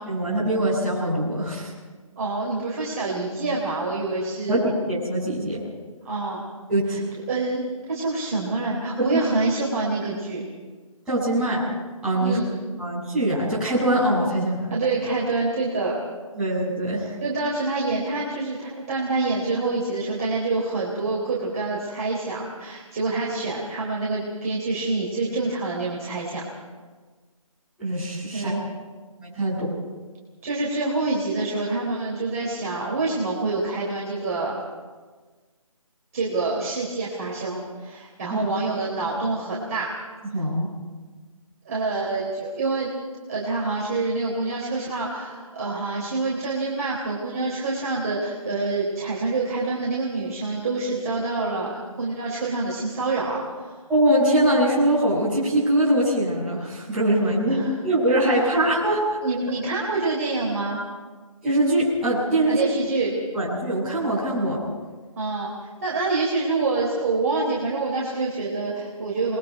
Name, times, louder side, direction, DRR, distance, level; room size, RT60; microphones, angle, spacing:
voice 1, 0.1-1.7 4.5-5.6 6.7-7.0 9.0-9.2 11.1-11.7 12.0-12.4 12.8-14.7 16.4-17.2 27.8-28.5 29.2-29.7 38.3-38.5 40.3-40.7 53.9-59.2 61.4-62.7 63.3-64.6, right 1 dB, 5° right, -12 dB, 6.9 m, -22 dB
voice 2, 2.2-4.6 6.0-6.4 6.9-7.0 7.3-10.4 12.2-12.5 14.7-15.9 17.2-26.4 28.3-28.6 30.4-34.6 36.1-39.9 41.7-42.9 43.3-53.7 57.5-57.7 58.4-58.5 59.2-60.8 62.5-63.1 65.2-65.5 65.8-69.4, right 3 dB, 25° right, -6 dB, 3.8 m, -26 dB
28.5 x 21.5 x 4.7 m, 1.4 s
figure-of-eight pair, 165°, 18 cm